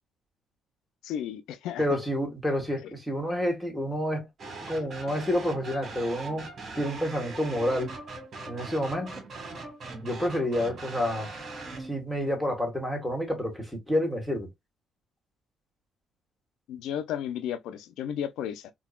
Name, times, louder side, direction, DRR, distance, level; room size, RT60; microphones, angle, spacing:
voice 1, 1.0-2.0 2.8-2.9 4.6-4.8 16.7-18.7, left 9 dB, 80° left, 0.5 m, -34 dB
voice 2, 1.8-4.3 4.7-6.5 6.7-8.0 8.5-9.2 10.0-11.3 11.8-14.5, equal, 5° left, 1.5 m, -29 dB
sound 1, 4.4-12.0, right 3 dB, 50° right, 1.5 m, -40 dB
3.7 x 2.3 x 2.3 m
supercardioid pair, 70°, 0 cm